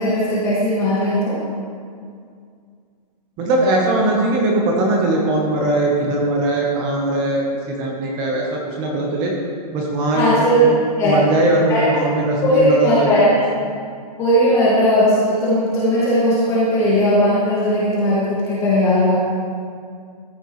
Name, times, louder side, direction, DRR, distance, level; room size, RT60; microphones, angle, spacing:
voice 1, 0.0-1.4 10.1-10.7 11.0-11.2 11.7-11.8 12.4-13.4 14.2-19.2, equal, 15° left, -9 dB, 1.9 m, -17 dB
voice 2, 3.4-9.3 9.7-10.3 10.7-13.2, right 2 dB, 20° right, -1 dB, 1.0 m, -20 dB
14.0 x 9.8 x 3.2 m, 2.2 s
hypercardioid pair, 175°, 21 cm